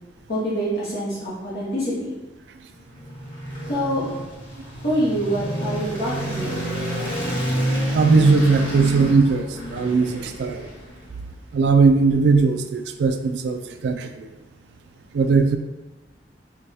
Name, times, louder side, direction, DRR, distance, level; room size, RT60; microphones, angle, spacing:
voice 1, 0.3-2.1 3.7-4.1 4.8-6.5, equal, 60° left, -8 dB, 0.9 m, -25 dB
sound 1, 2.8-11.2, right 1 dB, 30° left, 1.1 m, -28 dB
voice 2, 7.9-10.7 11.5-14.3 15.1-15.6, right 4 dB, 70° right, 8 dB, 0.3 m, -19 dB
4.7 x 2.2 x 2.7 m, 1.1 s
head